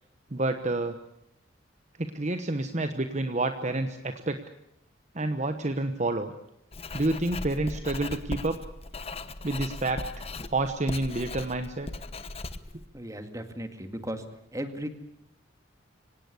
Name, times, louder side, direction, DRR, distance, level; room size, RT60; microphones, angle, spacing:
voice 1, 0.3-0.9 2.0-4.4 5.1-6.3 6.9-8.6 9.4-11.9, right 2 dB, 35° right, 8 dB, 1.1 m, -29 dB
Writing, 6.7-12.8, left 2 dB, 30° left, 1.0 m, -38 dB
voice 2, 12.9-14.2 14.5-14.9, right 1 dB, 15° right, 8 dB, 2.1 m, -36 dB
25.0 x 18.0 x 8.4 m, 0.80 s
head